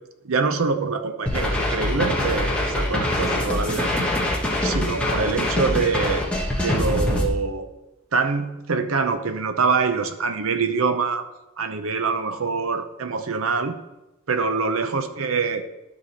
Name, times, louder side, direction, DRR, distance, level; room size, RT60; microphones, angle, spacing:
voice 1, 0.2-4.1 4.6-6.2 6.6-7.7 8.1-11.3 11.6-13.8 14.3-15.6, right 4 dB, 70° right, 8 dB, 0.7 m, -25 dB
sound 1, 1.3-7.3, left 1 dB, 5° left, 1.2 m, -24 dB
12.0 x 4.8 x 4.2 m, 0.97 s
head